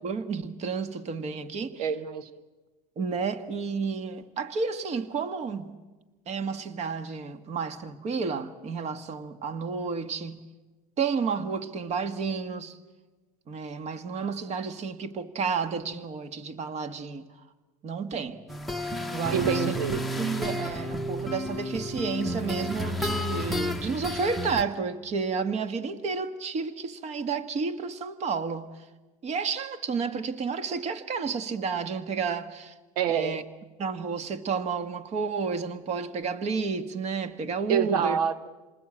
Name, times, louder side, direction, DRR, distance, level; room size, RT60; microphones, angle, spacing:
voice 1, 0.0-1.9 2.9-5.8 6.3-10.4 11.0-12.8 13.5-17.3 17.8-18.4 19.1-19.8 20.2-28.9 29.2-32.7 33.1-33.4 33.8-38.2, right 5 dB, 35° right, 1.6 m, -31 dB
voice 2, 1.8-2.4 19.3-20.0 33.0-33.4 37.7-38.5, right 8 dB, 85° right, 1.1 m, -27 dB
sound 1, 18.5-24.6, equal, ahead, 1.0 m, -31 dB
28.0 x 20.0 x 8.8 m
supercardioid pair, 125°, 19 cm